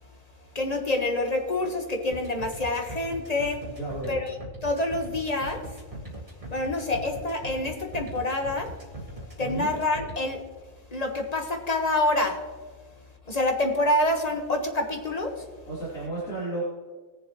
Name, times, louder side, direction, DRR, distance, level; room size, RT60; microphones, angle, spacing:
voice 1, 0.5-3.6 4.1-4.4 4.6-5.6 6.5-8.7 9.4-10.4 10.9-12.4 13.3-15.3, left 2 dB, 30° left, 3 dB, 1.4 m, -27 dB
sound 1, 2.1-10.2, right 1 dB, 25° right, 2.1 m, -40 dB
voice 2, 3.6-4.2 9.4-9.7 15.7-16.6, right 2 dB, 85° left, -8 dB, 3.3 m, -33 dB
19.5 x 7.2 x 3.1 m, 1.5 s
omnidirectional pair, 1.4 m